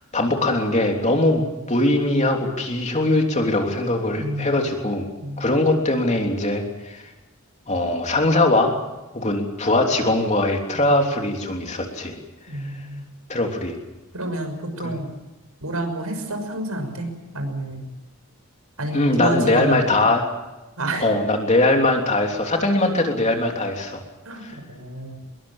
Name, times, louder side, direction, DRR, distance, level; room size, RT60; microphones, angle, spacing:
voice 1, 0.0-1.4 1.7-5.1 5.4-7.0 7.7-8.7 9.1-12.1 13.3-13.7 14.8-14.9 18.9-20.3 21.0-24.0 24.4-24.5, left 2 dB, 30° left, 2 dB, 3.3 m, -21 dB
voice 2, 4.1-4.6 5.2-5.5 12.5-13.1 14.1-15.1 15.6-17.1 17.3-17.9 18.8-20.0 20.8-21.2 24.2-25.3, right 1 dB, 75° right, 6 dB, 6.1 m, -29 dB
24.0 x 22.0 x 7.3 m, 1.1 s
head